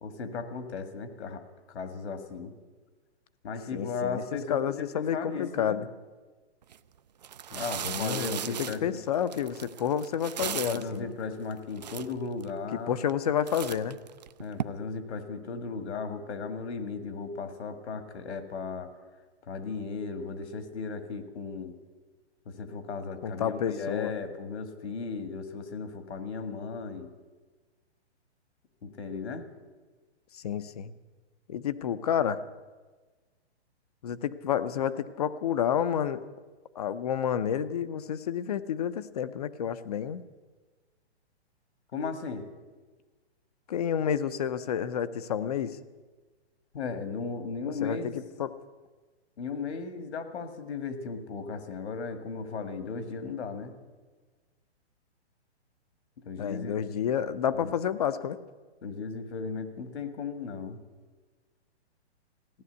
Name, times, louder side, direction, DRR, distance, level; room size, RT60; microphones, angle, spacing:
voice 1, 0.0-2.5 3.4-5.8 7.5-9.0 10.5-12.9 14.4-18.9 19.5-21.7 22.5-27.1 28.8-29.4 41.9-42.5 46.7-48.2 49.4-53.7 56.3-56.8 57.5-57.7 58.8-60.8, left 4 dB, 75° left, 9 dB, 2.0 m, -36 dB
voice 2, 3.7-4.2 4.5-5.9 7.8-11.1 12.7-14.0 23.2-24.1 30.3-30.9 31.5-32.4 34.0-36.2 36.8-40.2 43.7-45.8 47.8-48.1 48.4-48.5 56.4-58.4, left 9 dB, 35° left, 14 dB, 0.6 m, -30 dB
sound 1, 6.6-6.8 7.2-11.0 11.5-11.6 11.8-12.5 13.0-13.2 13.5-14.6, right 9 dB, 40° right, 0.4 m, -37 dB
15.5 x 10.5 x 8.1 m, 1.3 s
hypercardioid pair, 165°, 34 cm